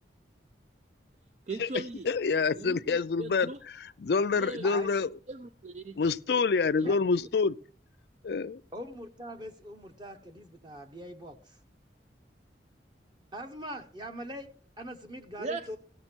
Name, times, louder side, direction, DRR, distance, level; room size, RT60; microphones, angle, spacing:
voice 1, 1.5-2.1 2.5-3.6 4.3-4.7 5.3-6.1 6.8-7.0 15.4-15.6, right 3 dB, 40° right, 0.4 m, -39 dB
voice 2, 2.1-3.5 4.0-5.1 6.0-7.6 8.2-8.6, left 4 dB, 60° left, 0.4 m, -27 dB
voice 3, 8.7-11.6 13.3-14.5 14.8-15.8, equal, 25° right, 1.0 m, -42 dB
16.0 x 6.8 x 4.5 m
head